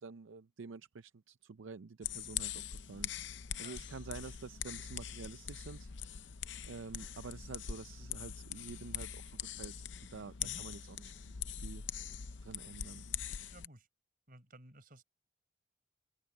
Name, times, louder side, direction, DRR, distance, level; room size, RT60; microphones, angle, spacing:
voice 1, 0.0-3.1 3.4-5.9 6.6-11.8 12.4-13.1, right 4 dB, 75° right, 0.5 m, -49 dB
sound 1, 2.0-13.7, left 9 dB, 65° left, 0.7 m, -43 dB
voice 2, 13.5-13.9 14.3-15.0, right 1 dB, 45° right, 5.4 m, -55 dB
open air
head